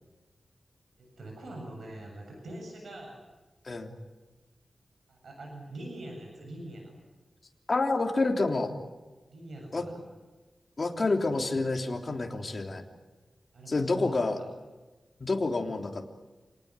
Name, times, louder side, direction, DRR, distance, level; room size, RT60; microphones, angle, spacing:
voice 1, 1.0-3.2 5.1-6.9 9.3-10.0 13.5-14.2, right 1 dB, 85° right, 1 dB, 7.6 m, -43 dB
voice 2, 7.7-8.7 9.7-9.8 10.8-12.8 13.7-14.4 15.2-16.1, left 3 dB, 40° left, 3 dB, 3.4 m, -28 dB
28.0 x 19.0 x 9.8 m, 1.2 s
wide cardioid pair, 120°, 0 cm